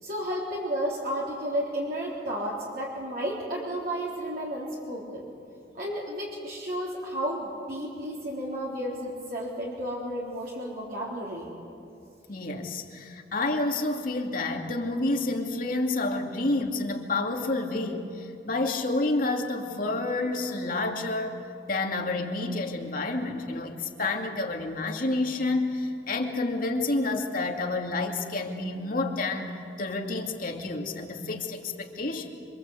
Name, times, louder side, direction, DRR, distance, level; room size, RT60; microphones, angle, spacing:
voice 1, 0.0-5.2 5.7-11.5, equal, 55° right, -5 dB, 3.9 m, -32 dB
voice 2, 12.3-21.4 21.7-29.5 29.8-32.3, left 2 dB, 50° left, 2 dB, 2.5 m, -29 dB
27.0 x 25.0 x 8.3 m, 2.6 s
head